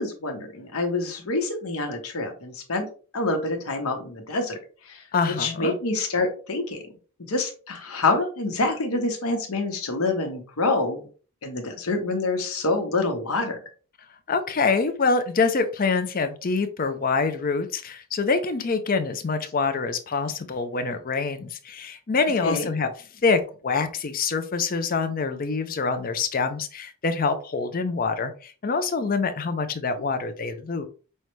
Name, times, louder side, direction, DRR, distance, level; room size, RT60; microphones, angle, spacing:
voice 1, 0.0-2.9 3.1-4.6 4.9-5.0 5.4-6.8 7.3-11.1 11.4-13.6 22.4-22.7, left 2 dB, 75° left, 4 dB, 1.0 m, -26 dB
voice 2, 5.1-5.7 14.3-22.9 23.2-30.9, left 4 dB, 40° left, 9 dB, 0.5 m, -25 dB
5.4 x 2.2 x 3.1 m, 0.37 s
head